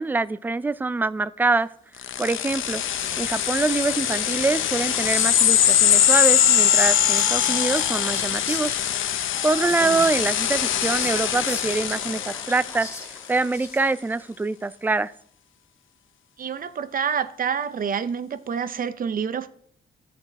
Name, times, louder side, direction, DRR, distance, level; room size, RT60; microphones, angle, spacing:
voice 1, 0.0-1.7 2.2-2.8 3.2-8.7 9.4-12.9 13.3-15.1, right 3 dB, 10° right, 0.3 m, -24 dB
sound 1, 2.0-13.1, left 10 dB, 80° left, 0.9 m, -22 dB
Whispering, 2.2-14.1, left 2 dB, 15° left, 2.6 m, -40 dB
voice 2, 9.5-10.1 16.4-19.5, right 7 dB, 45° right, 0.7 m, -28 dB
13.0 x 8.1 x 4.1 m
cardioid pair, 130°, 20 cm